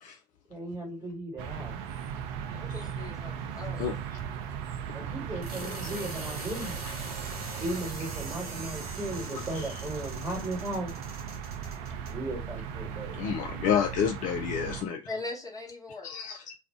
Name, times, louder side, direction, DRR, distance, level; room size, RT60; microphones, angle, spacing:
voice 1, 0.5-1.8 4.9-6.8 7.6-10.9 12.1-13.2, right 1 dB, 15° right, 1.4 m, -36 dB
sound 1, 1.4-14.8, right 8 dB, 45° right, 0.4 m, -38 dB
voice 2, 2.5-3.9 15.1-16.1, left 3 dB, 15° left, 1.1 m, -40 dB
sound 2, 3.2-13.3, right 1 dB, 70° right, 0.9 m, -43 dB
voice 3, 5.6-6.0 6.4-6.9 9.3-9.7 13.1-15.0 16.0-16.5, left 8 dB, 40° left, 0.4 m, -31 dB
2.3 x 2.0 x 3.6 m
figure-of-eight pair, 70°, 20 cm